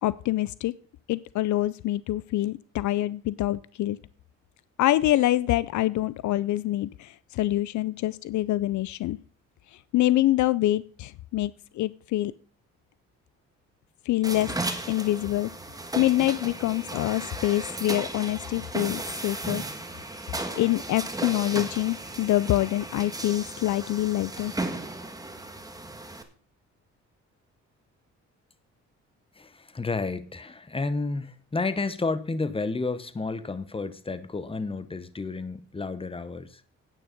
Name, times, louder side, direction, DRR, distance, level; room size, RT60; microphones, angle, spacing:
voice 1, 0.0-0.7 1.1-4.0 4.8-9.2 9.9-12.3 14.1-14.5 14.9-15.5 15.9-19.6 20.5-24.5, left 15 dB, 70° left, 0.5 m, -25 dB
sound 1, 14.2-26.2, right 2 dB, 10° right, 1.6 m, -35 dB
voice 2, 29.4-36.6, left 3 dB, 20° left, 1.0 m, -31 dB
9.2 x 9.2 x 5.2 m
cardioid pair, 90°, 30 cm